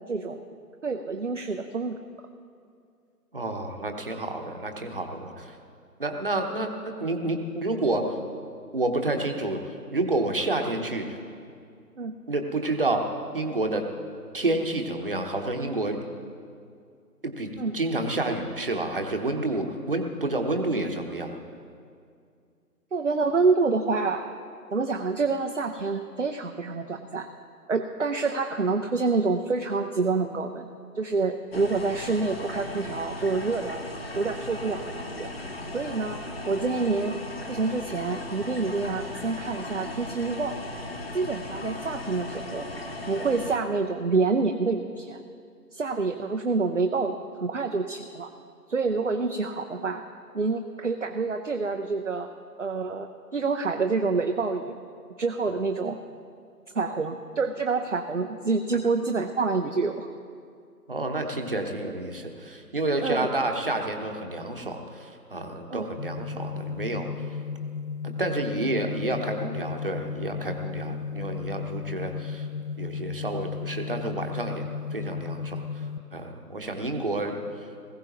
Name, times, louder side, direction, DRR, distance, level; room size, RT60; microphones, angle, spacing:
voice 1, 0.1-0.4 0.8-2.0 12.0-12.1 17.6-17.7 22.9-24.3 24.7-27.3 27.7-30.7 30.9-33.8 34.1-35.3 35.7-36.2 36.5-37.2 37.5-40.6 41.1-42.7 43.1-45.2 45.7-48.3 48.7-50.0 50.3-52.3 52.6-54.7 55.2-56.0 56.7-60.1 63.0-63.3 65.7-65.9, right 4 dB, 50° right, 5 dB, 0.6 m, -27 dB
voice 2, 3.3-5.5 6.0-8.1 8.7-9.6 9.9-11.2 12.3-13.9 14.3-16.0 17.2-17.5 17.7-21.3 60.9-67.1 68.0-72.5 72.8-74.6 74.9-75.6 76.1-77.4, right 2 dB, 35° right, 4 dB, 1.0 m, -29 dB
sound 1, 31.5-43.6, left 2 dB, 40° left, 0.9 m, -37 dB
sound 2, 66.0-76.0, left 5 dB, 60° left, 0.9 m, -34 dB
19.5 x 15.5 x 3.0 m, 2.3 s
figure-of-eight pair, 160°, 48 cm